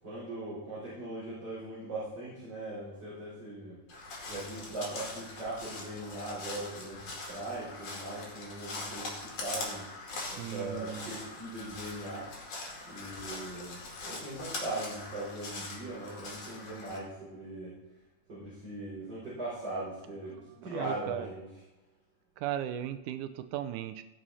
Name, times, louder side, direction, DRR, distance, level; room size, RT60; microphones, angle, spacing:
voice 1, 0.0-3.8 4.3-12.3 12.9-17.7 18.3-20.3 20.6-21.5, right 2 dB, 35° right, -11 dB, 5.0 m, -40 dB
Crow, 3.9-17.0, left 2 dB, 55° left, 3.3 m, -42 dB
voice 2, 10.2-11.1 20.3-21.3 22.4-24.0, right 11 dB, 90° right, 10 dB, 2.1 m, -37 dB
17.5 x 6.2 x 4.2 m, 1.1 s
omnidirectional pair, 3.5 m